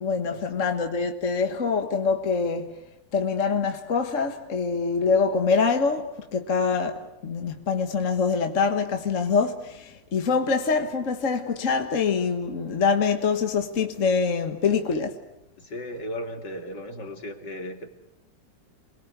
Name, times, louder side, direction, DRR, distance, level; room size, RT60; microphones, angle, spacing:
voice 1, 0.0-2.8 3.1-15.2, left 5 dB, 45° left, 1.7 m, -25 dB
voice 2, 15.6-17.9, equal, 65° left, 3.2 m, -36 dB
28.5 x 22.0 x 8.1 m
omnidirectional pair, 2.0 m